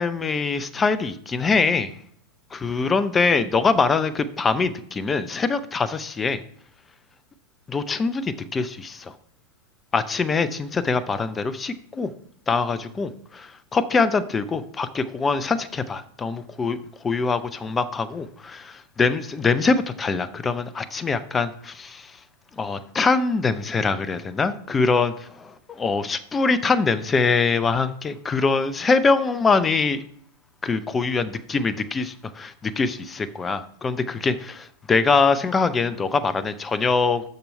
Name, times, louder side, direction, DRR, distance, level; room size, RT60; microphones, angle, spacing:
voice 1, 0.0-1.9 2.6-6.4 7.7-9.1 9.9-12.1 12.5-16.8 17.0-22.0 22.6-30.0 30.6-37.2, left 4 dB, 15° left, 14 dB, 0.6 m, -23 dB
6.6 x 6.1 x 5.4 m, 0.65 s
figure-of-eight pair, 90°, 0 cm